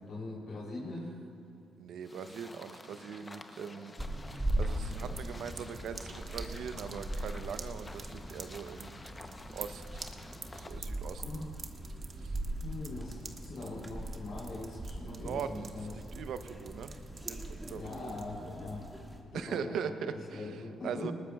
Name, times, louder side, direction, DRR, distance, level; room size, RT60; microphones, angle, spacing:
voice 1, 0.1-1.1 5.0-5.5 6.7-7.0 11.2-11.5 12.6-15.9 17.7-18.9 19.3-20.1 20.3-21.1, left 2 dB, 65° left, -6 dB, 3.2 m, -42 dB
voice 2, 1.8-3.9 4.3-9.0 9.5-10.0 10.5-11.2 12.2-12.4 15.0-18.1 19.3-21.1, right 7 dB, 70° right, 10 dB, 0.7 m, -41 dB
sound 1, 2.0-10.8, left 2 dB, 25° left, 0.7 m, -51 dB
sound 2, 4.0-19.2, right 1 dB, 10° right, 1.7 m, -40 dB
sound 3, 4.9-18.3, right 5 dB, 45° right, 0.9 m, -49 dB
20.0 x 18.5 x 2.3 m, 2.7 s
cardioid pair, 90°, 0 cm